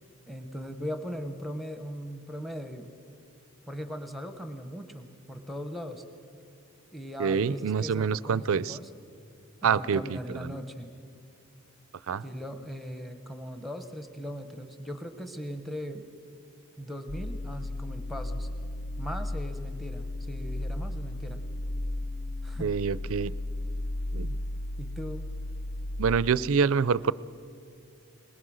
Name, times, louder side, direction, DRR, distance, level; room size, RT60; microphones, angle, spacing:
voice 1, 0.3-2.9 3.7-6.0 6.9-8.9 9.6-10.9 12.2-16.1 16.8-18.5 19.0-21.4 22.4-22.8 24.8-25.3, equal, ahead, 8 dB, 0.9 m, -39 dB
voice 2, 7.2-8.8 9.6-10.5 12.1-12.2 22.6-23.3 24.1-24.3 26.0-27.1, right 6 dB, 70° right, 19 dB, 0.4 m, -26 dB
sound 1, 17.1-26.2, left 1 dB, 45° left, 0.5 m, -34 dB
21.5 x 21.0 x 6.3 m, 2.4 s
head